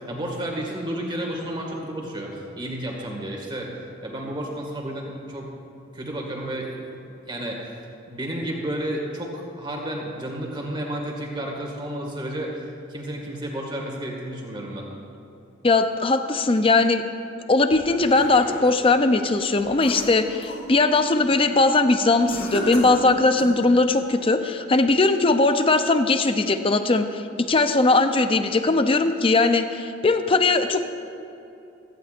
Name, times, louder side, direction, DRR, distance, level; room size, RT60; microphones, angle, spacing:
voice 1, 0.1-3.7 4.0-5.5 5.9-6.7 7.3-7.7 8.1-14.9, right 1 dB, 25° right, -1 dB, 2.0 m, -31 dB
voice 2, 15.6-17.0 17.5-30.8, left 3 dB, 30° left, 8 dB, 0.6 m, -20 dB
sound 1, 17.7-18.8 19.3-20.7 21.1-21.4 22.3-23.6, left 1 dB, 55° left, 3.0 m, -33 dB
17.0 x 14.5 x 2.6 m, 2.7 s
head